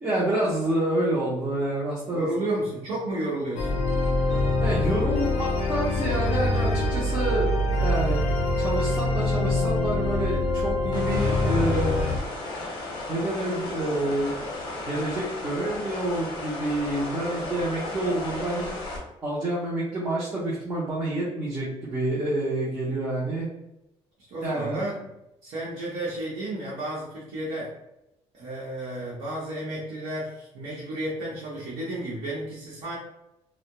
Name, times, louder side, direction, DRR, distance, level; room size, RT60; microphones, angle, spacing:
voice 1, 0.0-2.3 4.6-7.5 7.8-8.2 8.6-11.9 13.1-14.3 14.8-18.7 19.2-23.5 24.4-24.8, right 1 dB, 20° right, -8 dB, 0.5 m, -28 dB
voice 2, 2.1-3.8 24.3-25.1 25.4-27.7 28.3-33.0, right 1 dB, 85° right, -8 dB, 0.8 m, -32 dB
sound 1, 3.6-12.2, left 2 dB, 75° left, 0.4 m, -24 dB
sound 2, 10.9-19.0, left 2 dB, 45° left, 0.7 m, -35 dB
2.2 x 2.0 x 2.8 m, 0.88 s
cardioid pair, 180°, 11 cm